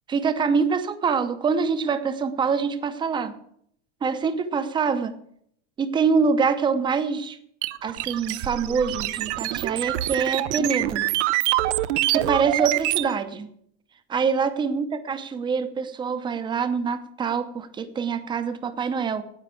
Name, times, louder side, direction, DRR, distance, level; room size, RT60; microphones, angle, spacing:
voice 1, 0.1-3.4 4.0-5.1 5.8-7.4 7.8-11.0 12.1-13.5 14.1-19.2, right 5 dB, 15° right, 10 dB, 0.7 m, -25 dB
sound 1, 7.6-13.1, right 16 dB, 75° right, 0.7 m, -25 dB
9.6 x 8.8 x 8.3 m, 0.69 s
supercardioid pair, 170°, 34 cm